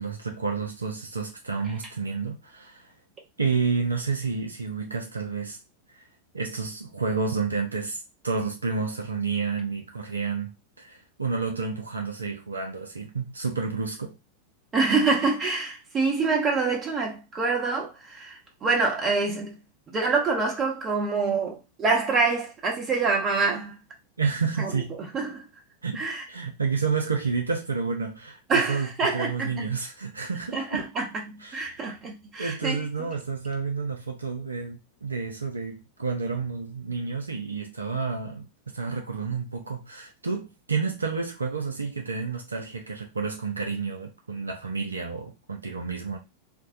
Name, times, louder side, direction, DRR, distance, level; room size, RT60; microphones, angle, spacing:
voice 1, 0.0-2.9 3.4-5.6 5.9-6.0 6.3-10.5 10.8-14.1 24.2-25.0 25.8-30.8 31.4-31.8 32.4-46.2, right 5 dB, 80° right, 0.4 m, -30 dB
voice 2, 14.7-19.6 19.9-23.8 24.6-24.7 25.1-25.4 25.9-26.2 28.5-29.5 30.5-32.9, right 4 dB, 25° right, 0.8 m, -26 dB
2.6 x 2.1 x 2.4 m
figure-of-eight pair, 90°, 0 cm